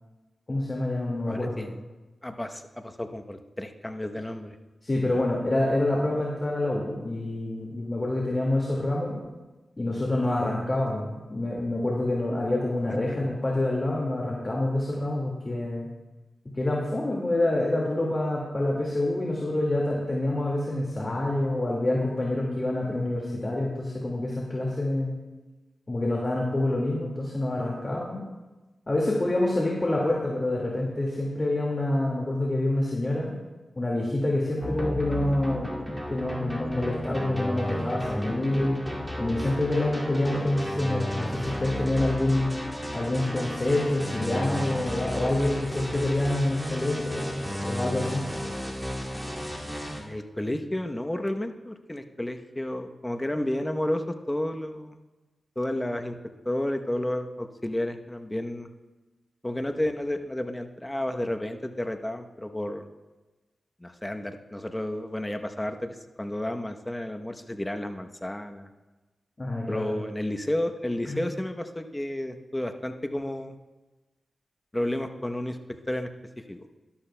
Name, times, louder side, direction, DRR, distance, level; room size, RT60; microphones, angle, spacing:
voice 1, 0.5-1.6 4.8-9.2 9.8-15.9 16.5-25.2 25.9-28.2 28.9-33.3 33.8-38.8 39.2-42.5 42.9-48.3 69.4-69.9 71.1-71.2, left 1 dB, 35° left, -3 dB, 2.0 m, -27 dB
voice 2, 1.3-1.8 2.2-4.6 5.0-5.2 40.3-40.6 50.0-55.0 55.6-56.2 56.4-58.7 59.4-62.9 63.8-68.7 69.7-73.5 74.7-75.6 75.9-76.1 76.5-76.7, left 1 dB, 15° left, 6 dB, 0.9 m, -31 dB
sound 1, 34.6-50.0, equal, 5° right, 2.3 m, -33 dB
13.0 x 12.0 x 2.2 m, 1.2 s
cardioid pair, 55°, 0 cm